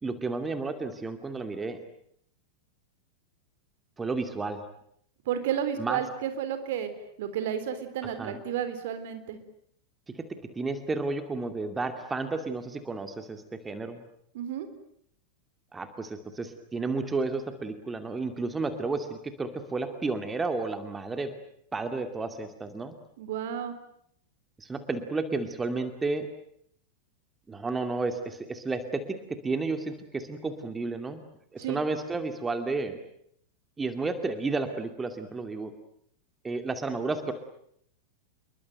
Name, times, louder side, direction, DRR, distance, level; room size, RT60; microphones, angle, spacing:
voice 1, 0.0-1.8 4.0-4.6 5.8-6.0 8.0-8.4 10.1-10.2 10.6-14.0 15.7-21.3 21.7-22.9 24.6-26.3 27.5-29.0 29.3-31.2 31.5-33.0 33.8-35.7 36.4-37.3, right 3 dB, 15° right, 8 dB, 2.4 m, -32 dB
voice 2, 5.3-6.9 7.2-9.4 14.3-14.7 23.2-23.7 31.6-31.8, right 9 dB, 55° right, 10 dB, 3.7 m, -32 dB
28.0 x 22.5 x 9.2 m, 0.70 s
figure-of-eight pair, 90°, 0 cm